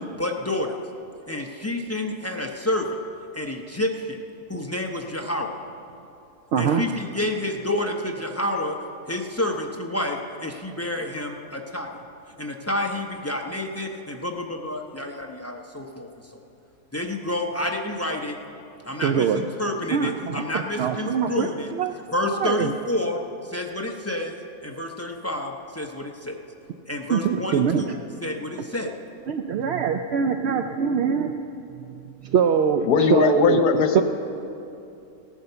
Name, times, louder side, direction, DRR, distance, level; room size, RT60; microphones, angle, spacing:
voice 1, 0.2-0.8 1.3-2.9 3.3-4.2 4.5-5.6 6.6-8.8 9.1-11.9 12.4-16.1 16.9-18.4 18.8-21.7 22.1-23.2 23.5-26.4 26.9-27.9 28.2-28.9, left 1 dB, 25° left, 2 dB, 0.3 m, -29 dB
voice 2, 6.5-6.8 19.0-19.4 19.9-20.4 20.8-21.9 22.4-22.7 27.1-27.8 29.3-31.3 32.2-33.6 33.9-34.0, right 7 dB, 70° right, 7 dB, 0.6 m, -23 dB
voice 3, 32.9-34.0, left 6 dB, 85° left, 8 dB, 1.4 m, -19 dB
16.0 x 9.2 x 6.8 m, 2.7 s
omnidirectional pair, 1.6 m